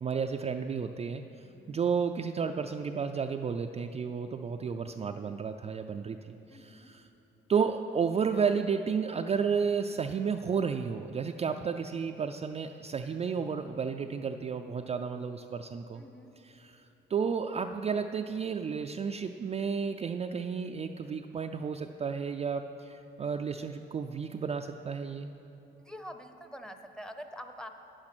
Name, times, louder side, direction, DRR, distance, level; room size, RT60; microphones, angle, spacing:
voice 1, 0.0-1.2 1.7-7.1 7.5-16.0 16.4-25.3, right 6 dB, 30° right, 5 dB, 0.4 m, -32 dB
voice 2, 1.4-1.8 6.5-6.9 16.0-16.3 25.8-27.7, equal, 5° left, 6 dB, 0.7 m, -45 dB
9.6 x 8.8 x 6.0 m, 3.0 s
cardioid pair, 90°, 20 cm